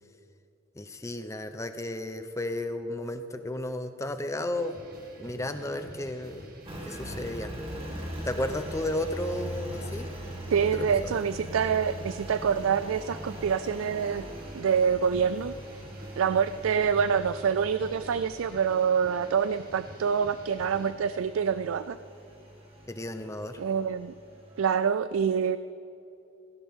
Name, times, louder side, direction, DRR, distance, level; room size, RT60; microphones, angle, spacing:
voice 1, 0.8-4.7 5.2-6.5 6.8-7.5 8.2-10.1 10.7-11.2 22.9-23.6, left 1 dB, 15° left, 9 dB, 0.7 m, -33 dB
sound 1, 4.5-20.9, right 1 dB, 50° right, 2.1 m, -48 dB
Engine, 6.6-24.6, right 1 dB, 30° right, 2.2 m, -42 dB
voice 2, 10.5-14.2 14.5-15.8 16.2-22.0 23.6-24.1 24.6-25.6, right 7 dB, 85° right, 14 dB, 0.4 m, -26 dB
17.0 x 16.5 x 3.6 m, 2.7 s
head